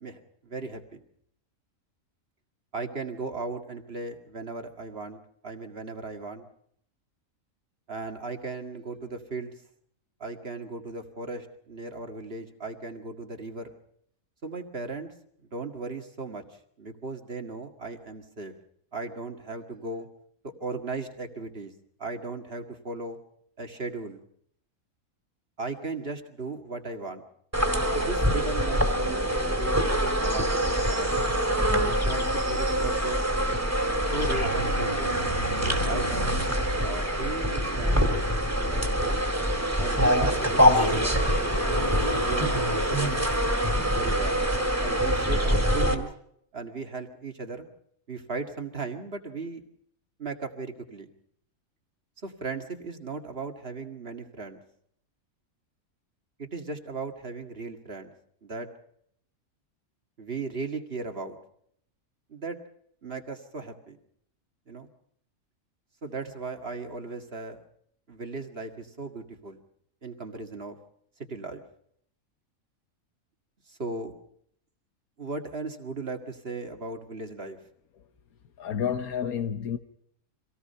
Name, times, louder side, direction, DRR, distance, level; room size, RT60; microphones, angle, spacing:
voice 1, 0.0-1.0 2.7-6.5 7.9-9.6 10.2-13.8 14.4-15.1 15.4-18.5 18.9-20.1 20.6-21.7 22.0-23.2 23.6-24.2 25.6-27.2 27.9-29.3 29.6-31.3 31.8-33.2 34.1-35.1 35.6-36.4 36.8-38.1 38.6-39.2 39.8-41.7 42.2-43.2 43.9-44.5 44.8-46.1 46.5-47.7 48.1-49.6 50.2-51.1 52.2-54.6 56.4-58.1 58.4-58.7 60.2-61.4 62.3-62.6 63.0-64.0 64.7-64.9 66.0-67.6 68.1-69.6 70.0-70.8 71.3-71.6 73.7-74.1 75.2-77.6, right 3 dB, 45° right, 2.2 m, -37 dB
sound 1, 27.5-45.9, equal, 10° right, 2.5 m, -25 dB
sound 2, 33.9-37.0 39.5-39.6 40.2-43.3 45.9-46.0, equal, 20° left, 2.3 m, -34 dB
voice 2, 78.6-79.8, left 8 dB, 90° left, 1.5 m, -29 dB
26.0 x 18.0 x 5.6 m
omnidirectional pair, 1.5 m